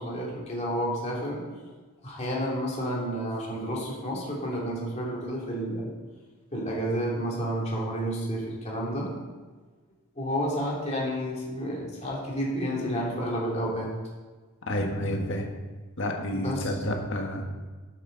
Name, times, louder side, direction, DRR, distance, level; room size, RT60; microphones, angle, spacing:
voice 1, 0.0-1.4 2.0-5.9 6.5-9.1 10.2-13.9 16.3-16.7, equal, 30° left, -4 dB, 2.8 m, -30 dB
voice 2, 14.7-15.5 16.0-17.5, equal, 60° left, 2 dB, 1.6 m, -29 dB
12.0 x 8.2 x 3.9 m, 1.3 s
head